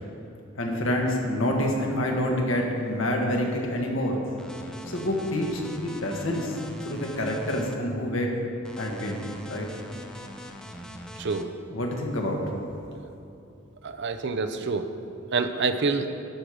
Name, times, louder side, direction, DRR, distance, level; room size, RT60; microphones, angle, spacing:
voice 1, 0.5-4.3 4.8-8.3 8.8-9.2 9.5-9.7 11.7-12.4, left 1 dB, 70° left, 0 dB, 1.5 m, -27 dB
sound 1, 4.4-7.8 8.6-11.5, equal, 5° left, 0.6 m, -42 dB
voice 2, 13.8-14.9 15.3-16.1, right 4 dB, 60° right, 9 dB, 0.6 m, -27 dB
12.5 x 5.1 x 6.3 m, 2.8 s
head